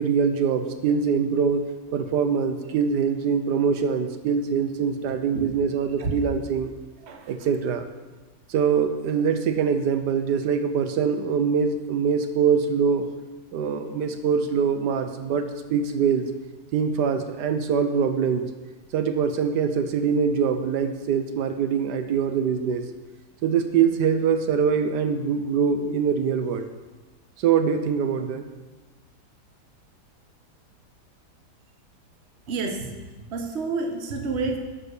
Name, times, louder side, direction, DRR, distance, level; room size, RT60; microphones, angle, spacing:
voice 1, 0.0-6.7 7.3-7.9 8.5-13.1 13.5-16.3 16.7-18.5 18.9-22.8 23.4-26.7 27.4-28.4, right 6 dB, 90° right, 7 dB, 1.4 m, -23 dB
voice 2, 32.5-33.0 33.3-34.6, right 4 dB, 45° right, 4 dB, 1.2 m, -29 dB
12.0 x 5.1 x 6.6 m, 1.2 s
omnidirectional pair, 1.7 m